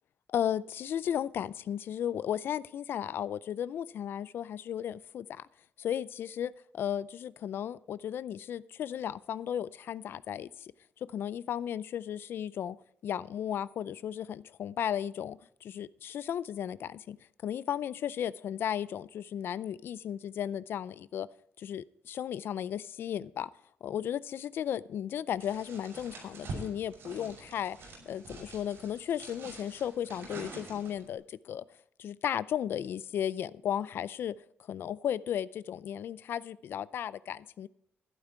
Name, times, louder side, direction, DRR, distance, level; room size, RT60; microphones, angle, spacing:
voice 1, 0.3-5.5 5.8-10.7 11.1-12.8 13.0-17.2 17.4-21.3 21.6-23.5 23.8-27.8 28.1-31.6 32.0-34.4 34.7-37.7, left 9 dB, 65° left, 0.5 m, -35 dB
sound 1, 25.4-31.1, right 3 dB, 70° right, 6.1 m, -46 dB
12.5 x 11.0 x 4.6 m
wide cardioid pair, 170°, 4 cm